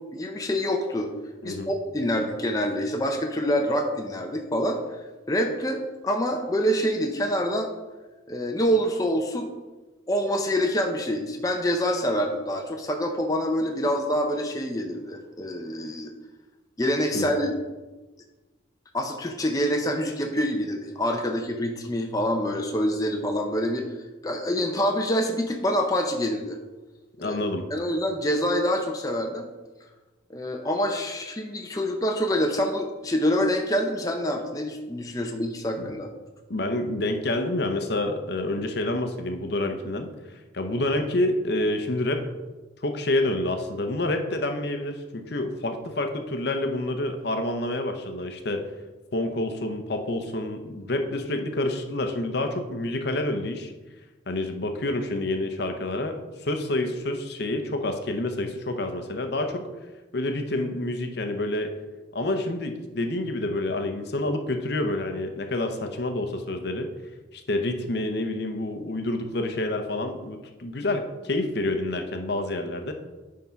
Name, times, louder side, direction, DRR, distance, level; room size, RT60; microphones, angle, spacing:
voice 1, 0.1-1.1 1.4-7.7 8.3-9.5 10.1-16.1 16.8-17.5 18.9-23.9 24.2-26.6 27.2-27.4 27.7-29.5 30.3-36.1, equal, 20° left, 3 dB, 0.6 m, -26 dB
voice 2, 27.2-27.7 35.8-35.9 36.5-42.3 42.8-48.6 49.1-53.7 54.3-56.1 56.4-59.7 60.1-61.8 62.1-66.9 67.3-72.9, left 1 dB, 55° left, 6 dB, 0.8 m, -28 dB
9.4 x 3.8 x 5.7 m, 1.2 s
head